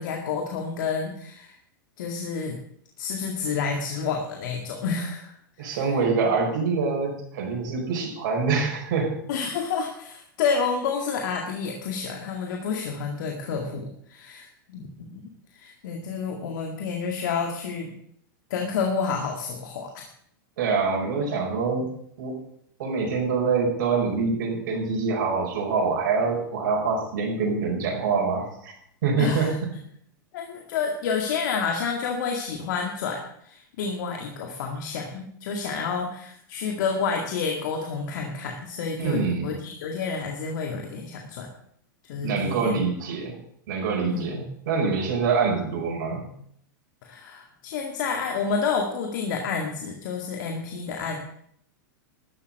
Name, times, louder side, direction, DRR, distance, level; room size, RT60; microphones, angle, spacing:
voice 1, 0.0-1.5 2.0-2.6 3.0-5.3 5.6-5.8 9.3-15.2 15.5-17.9 18.5-20.1 29.2-29.6 30.3-41.5 42.1-42.8 44.1-44.4 47.0-51.2, left 5 dB, 65° left, 2 dB, 2.1 m, -29 dB
voice 2, 5.6-9.2 20.6-21.8 22.2-22.3 22.8-28.7 29.0-29.6 39.0-39.5 42.2-43.4 43.7-46.3, right 4 dB, 70° right, -1 dB, 5.1 m, -25 dB
13.5 x 7.8 x 7.8 m, 0.69 s
hypercardioid pair, 120°, 11 cm